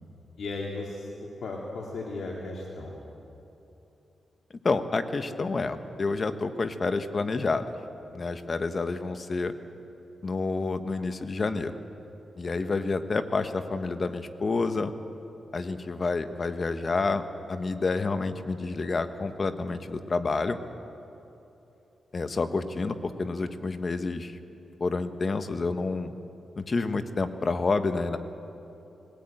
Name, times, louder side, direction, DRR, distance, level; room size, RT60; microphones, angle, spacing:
voice 1, 0.4-3.0, left 2 dB, 70° left, -2 dB, 2.6 m, -36 dB
voice 2, 4.6-7.7 8.1-9.5 10.2-11.8 12.4-14.9 15.5-20.6 22.1-24.4 24.8-26.1 26.6-28.2, left 3 dB, 45° left, 9 dB, 1.3 m, -29 dB
20.5 x 17.0 x 8.9 m, 2.9 s
cardioid pair, 70°, 0 cm